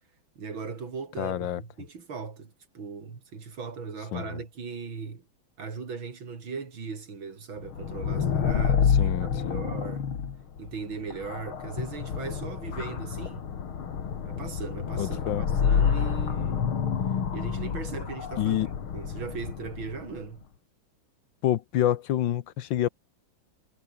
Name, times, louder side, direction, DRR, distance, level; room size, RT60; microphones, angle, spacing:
voice 1, 0.4-5.3 5.6-10.1 10.6-13.5 14.3-16.7 17.3-18.6 18.9-20.4, right 5 dB, 75° right, 3.9 m, -38 dB
voice 2, 1.2-1.6 4.1-4.4 9.0-9.6 15.0-15.4 18.4-18.7 21.4-22.9, left 12 dB, 70° left, 1.6 m, -27 dB
sound 1, 7.7-20.2, left 7 dB, 90° left, 2.9 m, -28 dB
omnidirectional pair, 2.2 m